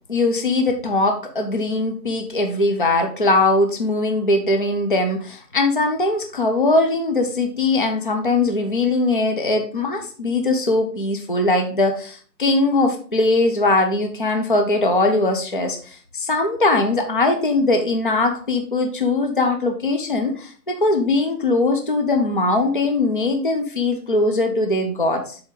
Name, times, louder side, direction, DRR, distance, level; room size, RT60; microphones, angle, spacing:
voice 1, 0.1-25.4, left 2 dB, 35° left, 4 dB, 0.5 m, -20 dB
7.5 x 3.5 x 5.1 m, 0.43 s
hypercardioid pair, 175°, 49 cm